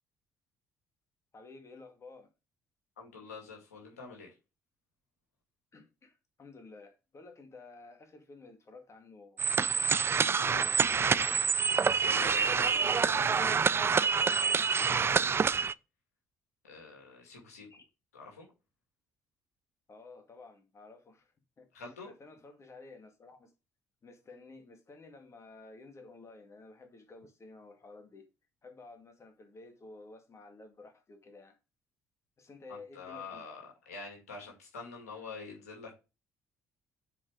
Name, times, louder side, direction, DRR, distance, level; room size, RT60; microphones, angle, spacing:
voice 1, 1.3-2.3 5.7-9.5 10.4-10.9 17.7-17.9 19.9-23.5 24.0-28.3 28.6-31.6 32.4-33.5, left 3 dB, 35° left, 2.1 m, -52 dB
voice 2, 3.0-4.3 12.0-15.7 16.6-17.7 18.1-18.4 21.7-22.1 32.7-36.1, left 4 dB, 85° left, 2.4 m, -47 dB
sound 1, 9.4-15.7, right 6 dB, 30° right, 0.3 m, -27 dB
7.1 x 4.7 x 5.0 m
hypercardioid pair, 45°, 8 cm